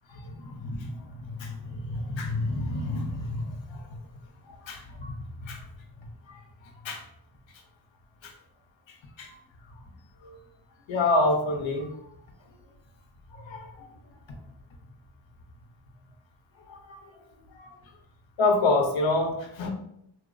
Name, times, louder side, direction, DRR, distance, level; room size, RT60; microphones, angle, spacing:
voice 1, 0.4-3.8 4.6-5.1 5.4-5.6 6.8-7.0 8.2-8.3 9.2-9.3 10.2-10.4 10.9-11.9 13.4-13.7 16.7-17.0 17.6-17.7 18.4-19.7, left 2 dB, 75° left, 4 dB, 0.6 m, -28 dB
2.7 x 2.0 x 2.4 m, 0.77 s
wide cardioid pair, 95°, 46 cm